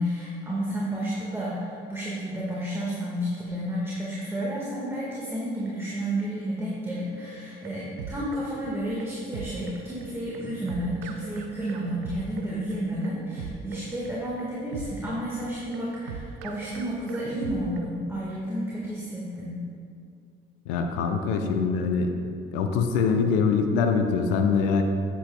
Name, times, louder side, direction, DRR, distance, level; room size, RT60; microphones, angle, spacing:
voice 1, 0.0-19.6, equal, 10° right, -6 dB, 1.6 m, -31 dB
sound 1, 7.3-17.9, right 5 dB, 70° right, 0.6 m, -39 dB
voice 2, 20.7-22.1 22.5-24.8, left 5 dB, 70° left, 5 dB, 0.7 m, -23 dB
9.9 x 8.3 x 2.3 m, 2.5 s
figure-of-eight pair, 50°, 29 cm